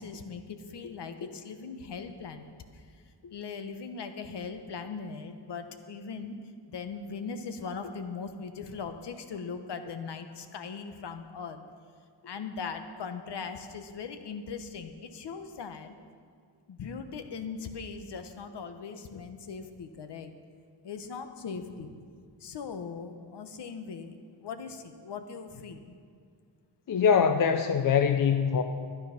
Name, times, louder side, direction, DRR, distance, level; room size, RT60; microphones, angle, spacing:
voice 1, 0.0-2.5 3.2-6.4 6.7-11.6 12.2-15.9 16.7-20.3 20.8-22.0 22.4-24.2 24.4-25.9, left 5 dB, 60° left, 8 dB, 1.0 m, -39 dB
voice 2, 26.9-28.6, left 7 dB, 45° left, 7 dB, 0.5 m, -23 dB
12.0 x 10.5 x 5.7 m, 2.1 s
wide cardioid pair, 140°, 46 cm